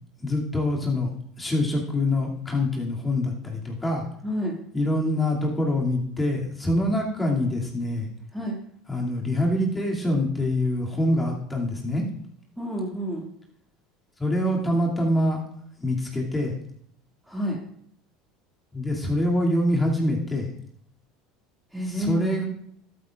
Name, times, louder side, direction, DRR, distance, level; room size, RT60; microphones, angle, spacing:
voice 1, 0.2-1.1 1.4-4.1 4.7-8.1 8.9-12.0 14.2-15.4 15.8-16.5 18.7-20.5 21.8-22.4, left 1 dB, 15° left, -2 dB, 2.6 m, -25 dB
voice 2, 4.2-4.6 8.3-8.6 12.6-13.3 17.3-17.6 21.7-22.3, equal, 5° right, -2 dB, 2.3 m, -29 dB
13.5 x 8.5 x 2.5 m, 0.68 s
hypercardioid pair, 85°, 0 cm